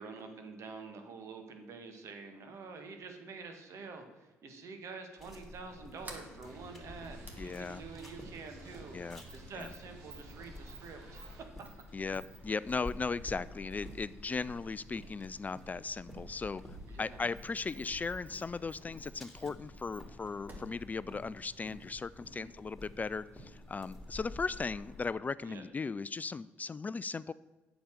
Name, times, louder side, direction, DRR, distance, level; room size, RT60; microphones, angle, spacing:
voice 1, 0.0-11.2 16.9-17.2 22.3-22.5 25.4-25.7, right 4 dB, 60° right, 6 dB, 1.8 m, -47 dB
sound 1, 5.2-25.1, left 1 dB, 5° left, 3.4 m, -51 dB
Sliding door, 5.9-22.1, equal, 30° right, 2.5 m, -54 dB
sound 2, 6.4-11.4, right 3 dB, 80° right, 1.7 m, -55 dB
voice 2, 7.4-7.8 8.9-9.2 9.6-9.7 11.9-27.3, left 4 dB, 30° left, 17 dB, 0.3 m, -37 dB
8.7 x 7.1 x 6.5 m, 1.2 s
hypercardioid pair, 55°, 6 cm